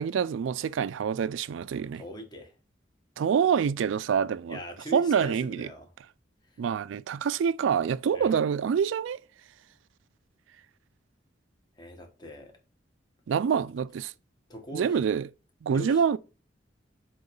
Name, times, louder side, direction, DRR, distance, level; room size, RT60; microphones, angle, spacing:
voice 1, 0.0-2.0 3.2-4.6 4.9-5.7 6.6-9.2 13.3-14.1 14.7-15.2 15.6-16.2, right 7 dB, 85° right, 0.3 m, -26 dB
voice 2, 1.9-2.5 4.5-5.9 8.1-8.4 11.8-12.6 14.5-15.0 15.7-16.0, equal, 20° left, 1.4 m, -41 dB
7.7 x 3.1 x 5.2 m
head